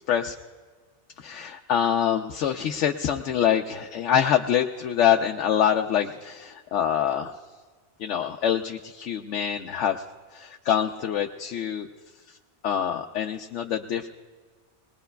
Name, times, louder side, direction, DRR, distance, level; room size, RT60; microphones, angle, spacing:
voice 1, 1.2-7.3 8.0-10.0 10.3-11.9 12.6-14.1, left 9 dB, 80° left, 3 dB, 0.9 m, -25 dB
21.0 x 20.5 x 2.3 m, 1.5 s
omnidirectional pair, 1.2 m